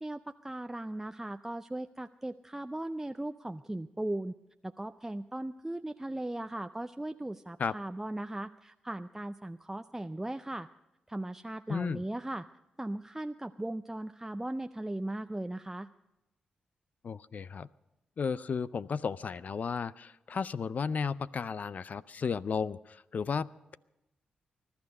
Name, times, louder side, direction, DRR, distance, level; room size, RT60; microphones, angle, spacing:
voice 1, 0.0-4.3 4.6-10.7 11.1-12.5 12.8-15.9, right 1 dB, 10° right, 9 dB, 0.5 m, -38 dB
voice 2, 11.7-12.0 17.0-17.7 18.2-23.8, left 5 dB, 55° left, 18 dB, 0.4 m, -34 dB
21.0 x 11.5 x 5.4 m, 0.95 s
supercardioid pair, 55°, 3 cm